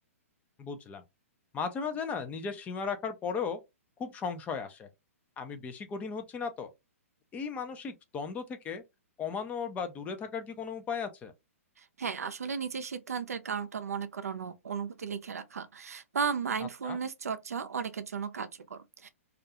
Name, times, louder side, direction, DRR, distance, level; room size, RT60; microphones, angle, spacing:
voice 1, 0.6-1.0 1.5-3.6 4.0-4.9 5.4-6.7 7.3-8.8 9.2-11.3 16.8-17.0, left 5 dB, 20° left, 0.4 m, -36 dB
voice 2, 11.8-19.1, right 6 dB, 85° right, 0.5 m, -35 dB
2.4 x 2.2 x 2.7 m
hypercardioid pair, 130°, 8 cm